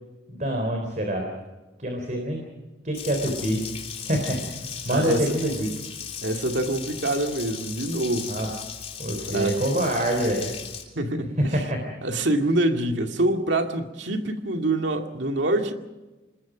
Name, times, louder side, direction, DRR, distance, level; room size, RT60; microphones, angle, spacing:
voice 1, 0.3-1.3 1.8-2.4 2.8-3.7 4.0-4.5 4.8-5.7 8.3-8.5 9.0-10.5 11.4-11.8, right 1 dB, 45° right, 3.7 m, -25 dB
Water tap faucet, 2.9-10.8, left 7 dB, 35° left, 3.4 m, -37 dB
voice 2, 4.9-5.2 6.2-8.4 9.3-9.6 11.0-11.4 12.0-15.7, right 1 dB, 85° right, 2.2 m, -25 dB
26.5 x 21.0 x 5.1 m
head